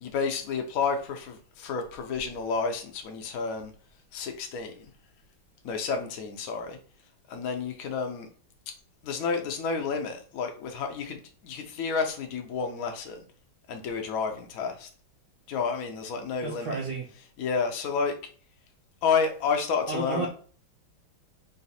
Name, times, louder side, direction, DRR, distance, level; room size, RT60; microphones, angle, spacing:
voice 1, 0.0-3.7 4.1-4.9 5.6-6.8 7.3-8.3 9.0-13.2 13.7-14.9 15.5-16.8 17.4-18.1 19.0-20.3, left 5 dB, 60° left, 0.9 m, -30 dB
voice 2, 16.4-17.0 19.9-20.3, right 3 dB, 65° right, 1.2 m, -31 dB
4.0 x 2.5 x 4.1 m
omnidirectional pair, 2.2 m